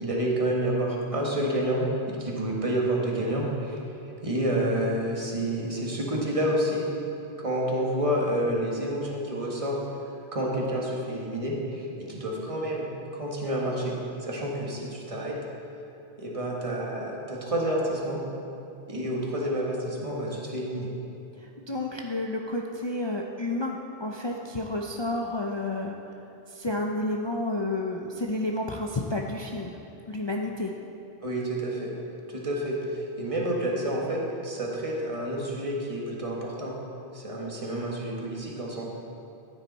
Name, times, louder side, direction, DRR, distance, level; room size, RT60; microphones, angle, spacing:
voice 1, 0.0-3.8 4.2-6.8 7.4-9.8 10.3-12.9 13.1-13.9 14.2-15.4 16.2-18.2 18.9-20.9 31.2-31.9 32.3-36.8 37.1-38.9, right 1 dB, 30° right, -3 dB, 1.7 m, -29 dB
voice 2, 21.4-26.0 26.5-29.8 30.1-30.7, left 2 dB, 30° left, 0 dB, 0.6 m, -30 dB
14.5 x 9.1 x 4.1 m, 2.9 s
omnidirectional pair, 1.1 m